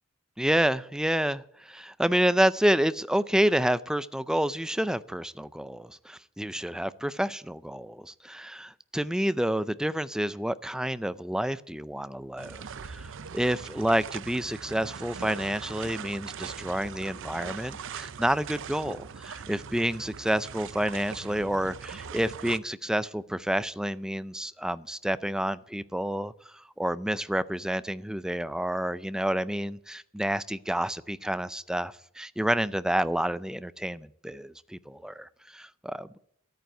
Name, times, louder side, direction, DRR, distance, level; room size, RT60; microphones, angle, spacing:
voice 1, 0.4-26.3 26.8-36.2, right 1 dB, 5° right, 0.4 m, -29 dB
sound 1, 12.4-22.6, right 6 dB, 60° right, 0.6 m, -41 dB
13.0 x 9.1 x 7.8 m
head